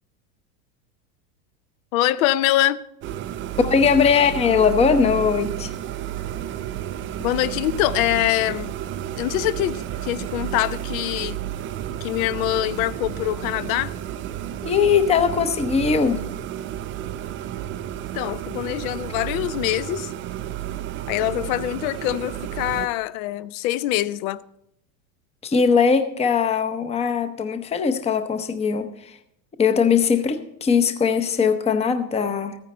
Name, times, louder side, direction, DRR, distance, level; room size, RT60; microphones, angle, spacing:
voice 1, 1.9-2.8 7.2-8.7 9.2-11.4 12.0-13.9 18.1-20.1 21.1-24.4, left 14 dB, 60° left, 0.7 m, -24 dB
sound 1, 3.0-22.9, right 11 dB, 30° right, 0.4 m, -31 dB
voice 2, 3.6-5.7 14.6-16.2 25.4-29.2 29.6-32.6, left 6 dB, 15° left, 0.7 m, -20 dB
14.5 x 9.8 x 4.1 m
supercardioid pair, 115°, 46 cm